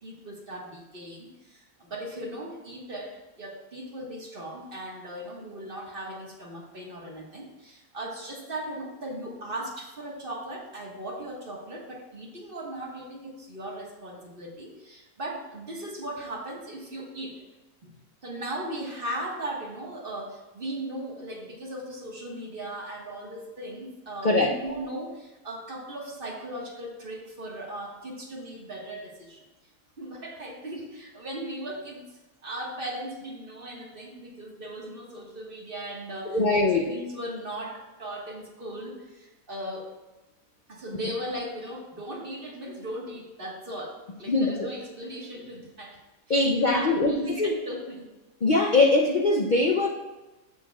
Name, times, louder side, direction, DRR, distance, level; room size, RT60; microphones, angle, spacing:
voice 1, 0.0-17.4 17.8-18.0 18.2-29.4 30.0-32.1 32.4-39.9 40.7-46.0 46.5-48.1, right 1 dB, 35° right, -2 dB, 1.6 m, -38 dB
voice 2, 24.2-24.5 36.3-36.9 44.3-44.8 46.3-47.6 48.4-49.9, left 2 dB, 70° left, 1 dB, 0.4 m, -22 dB
14.5 x 6.3 x 2.3 m, 1.1 s
omnidirectional pair, 1.7 m